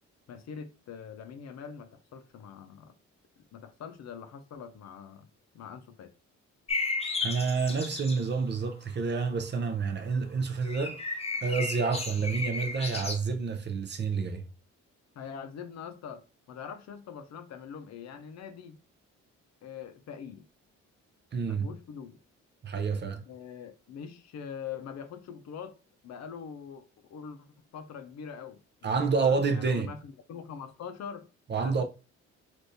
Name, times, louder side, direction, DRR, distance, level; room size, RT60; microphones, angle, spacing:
voice 1, 0.3-2.9 3.5-5.3 5.5-6.1 11.9-12.0 15.2-18.8 19.6-20.5 21.4-22.2 23.3-25.8 26.0-26.8 27.1-27.5 27.7-31.3 31.6-31.8, left 7 dB, 60° left, 0.6 m, -43 dB
sound 1, 6.7-8.3 10.6-13.1, left 3 dB, 20° left, 0.6 m, -34 dB
voice 2, 7.2-11.0 11.4-14.4 21.3-21.7 22.6-23.2 28.8-29.9 31.5-31.8, right 5 dB, 35° right, 0.5 m, -29 dB
3.5 x 2.6 x 2.7 m
cardioid pair, 90°, 30 cm